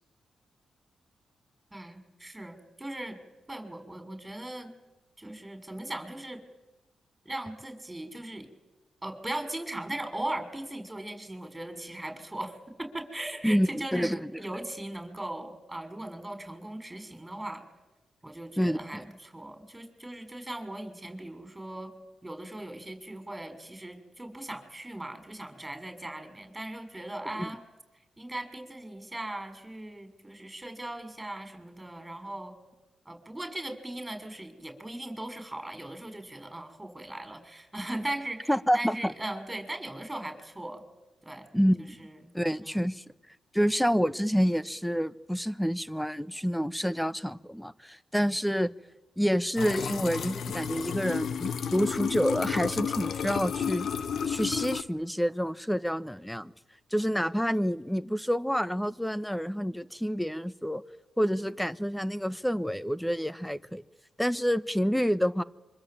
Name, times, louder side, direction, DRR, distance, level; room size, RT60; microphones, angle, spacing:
voice 1, 1.7-3.2 3.5-4.7 5.2-6.4 7.2-8.5 9.0-17.6 18.2-21.9 22.2-27.6 28.2-32.5 33.0-40.8 41.2-41.5 41.8-42.1 42.6-42.7, right 1 dB, 15° right, 7 dB, 6.4 m, -38 dB
voice 2, 13.4-14.4 18.6-19.0 27.4-27.5 38.5-39.1 41.5-42.0 42.3-43.0 43.5-48.7 49.2-53.9 54.2-56.5 56.9-60.8 61.2-63.8 64.2-65.4, equal, 5° left, 15 dB, 1.3 m, -28 dB
sound 1, 49.6-54.8, left 7 dB, 70° left, 1.1 m, -32 dB
26.0 x 25.0 x 9.0 m, 1.1 s
cardioid pair, 60°, 0 cm